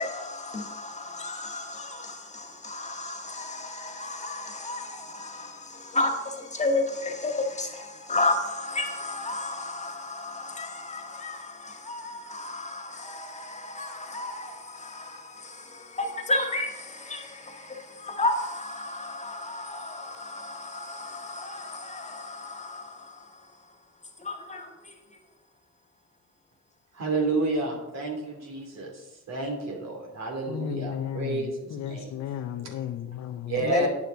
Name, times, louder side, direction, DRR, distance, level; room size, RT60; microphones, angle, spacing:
voice 1, 0.0-25.2 33.6-33.9, left 2 dB, 25° left, 1.9 m, -33 dB
voice 2, 26.9-32.3 33.4-33.9, right 3 dB, 60° right, 3.0 m, -30 dB
voice 3, 30.5-33.6, left 9 dB, 70° left, 0.7 m, -34 dB
9.7 x 6.9 x 5.2 m
cardioid pair, 90°, 30 cm